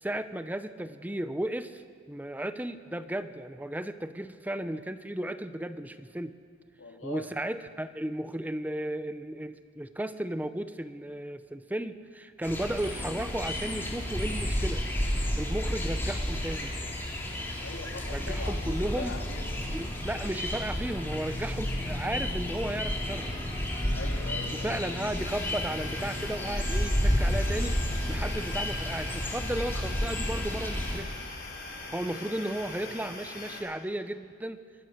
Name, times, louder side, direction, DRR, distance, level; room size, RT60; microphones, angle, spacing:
voice 1, 0.0-6.4 7.0-14.8 15.1-16.7 18.1-19.1 19.7-23.3 24.6-31.1 31.9-34.6, right 1 dB, 10° right, 11 dB, 0.6 m, -34 dB
voice 2, 6.8-7.3 17.6-19.6 23.9-24.8, left 3 dB, 85° left, 3 dB, 2.3 m, -41 dB
sound 1, 12.4-31.0, equal, 10° left, 3.6 m, -31 dB
sound 2, 25.2-33.6, left 2 dB, 60° left, 5.7 m, -41 dB
24.0 x 20.5 x 6.5 m, 2.1 s
head